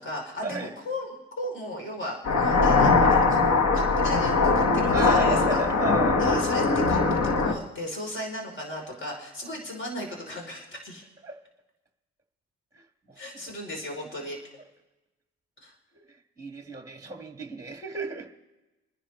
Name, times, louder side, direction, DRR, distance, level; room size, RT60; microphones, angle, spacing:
voice 1, 0.0-3.4 3.7-5.6 6.2-11.0 13.2-14.4 15.6-15.7, left 1 dB, 40° left, 1 dB, 3.4 m, -36 dB
sound 1, 2.2-7.5, left 4 dB, 60° left, 1.5 m, -21 dB
voice 2, 4.9-6.2 11.2-11.3 12.7-13.5 15.9-18.3, right 3 dB, 10° right, 3 dB, 1.6 m, -34 dB
29.5 x 10.0 x 3.2 m, 1.1 s
cardioid pair, 90°, 30 cm